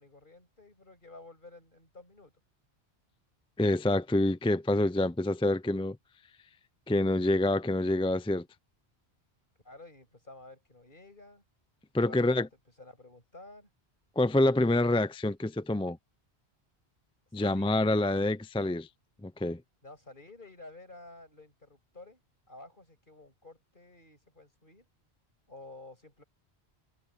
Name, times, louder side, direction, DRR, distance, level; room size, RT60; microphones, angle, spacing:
voice 1, 0.0-2.3 9.6-11.4 12.0-12.4 12.8-13.7 17.4-18.2 19.8-22.2 22.5-24.9 25.5-26.2, left 2 dB, 50° left, 7.2 m, -51 dB
voice 2, 3.6-6.0 6.9-8.5 11.9-12.5 14.2-16.0 17.3-18.9 19.2-19.6, left 1 dB, 10° left, 0.3 m, -27 dB
omnidirectional pair, 1.1 m